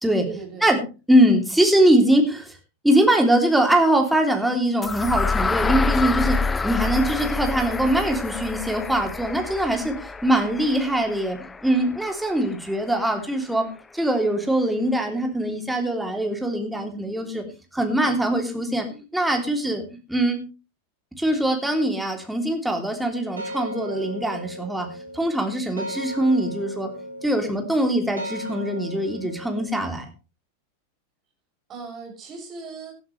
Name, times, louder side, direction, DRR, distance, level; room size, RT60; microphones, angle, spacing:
voice 1, 0.2-0.7 31.7-32.9, right 5 dB, 25° right, 0 dB, 7.1 m, -37 dB
voice 2, 1.1-2.6 2.8-13.7 13.9-17.4 17.7-18.9 19.1-19.8 20.1-20.4 21.2-24.9 25.1-26.9 27.2-30.1, right 1 dB, 5° right, 3 dB, 3.1 m, -22 dB
sound 1, 4.8-12.8, left 4 dB, 15° left, 0.6 m, -27 dB
sound 2, 23.1-29.7, equal, 75° right, 2.7 m, -36 dB
17.5 x 12.0 x 3.3 m, 0.32 s
figure-of-eight pair, 90°, 0 cm